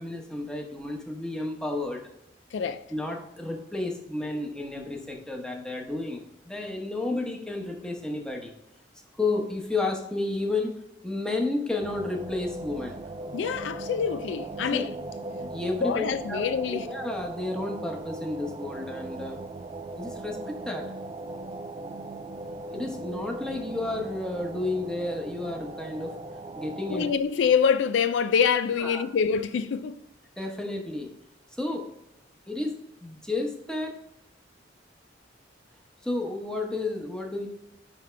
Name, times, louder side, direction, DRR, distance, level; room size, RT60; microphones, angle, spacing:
voice 1, 0.0-2.0 2.9-8.5 9.1-10.7 11.0-13.0 14.7-14.8 15.3-16.0 16.3-16.4 16.7-19.4 20.0-20.8 22.7-26.1 26.6-27.1 28.7-29.0 30.4-31.1 31.6-31.8 32.5-32.7 33.0-33.9 36.0-37.5, left 2 dB, 5° left, 1.0 m, -31 dB
voice 2, 2.5-2.8 13.3-14.9 15.8-16.9 26.9-30.0, left 6 dB, 70° left, 0.3 m, -25 dB
sound 1, 11.8-27.1, right 2 dB, 25° right, 0.3 m, -39 dB
9.7 x 3.6 x 3.3 m
head